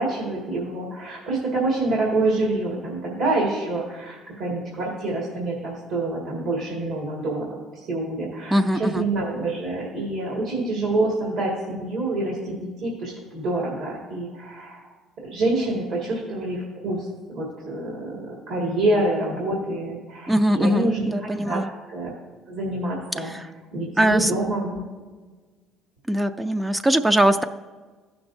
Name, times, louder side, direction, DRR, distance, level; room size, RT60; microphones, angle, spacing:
voice 1, 0.0-7.5 7.7-14.8 15.3-21.6 21.9-22.1 22.5-23.3 23.7-24.8, right 2 dB, 70° right, -2 dB, 1.9 m, -27 dB
voice 2, 8.5-9.0 20.3-21.7 24.0-24.3 26.1-27.4, right 1 dB, 10° right, 8 dB, 0.4 m, -21 dB
14.5 x 5.9 x 2.6 m, 1.4 s
supercardioid pair, 80°, 0 cm